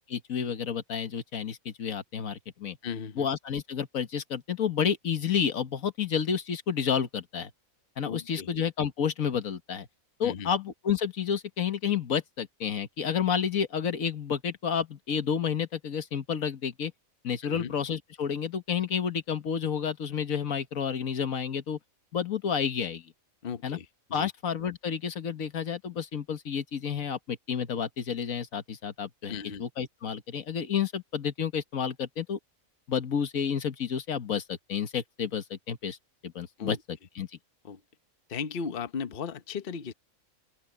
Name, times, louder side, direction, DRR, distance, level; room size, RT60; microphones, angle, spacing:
voice 1, 0.1-2.8 3.2-7.5 8.0-9.9 10.2-16.9 17.2-21.8 22.1-23.0 23.6-23.8 24.1-32.4 32.9-36.0 36.2-36.8 37.1-37.3, left 7 dB, 75° left, 1.7 m, -30 dB
voice 2, 2.8-3.3 8.1-8.5 10.2-10.5 17.4-17.7 23.4-24.3 29.3-29.6 36.6-36.8 37.6-37.8 38.3-39.9, left 6 dB, 45° left, 1.0 m, -36 dB
omnidirectional pair, 1.4 m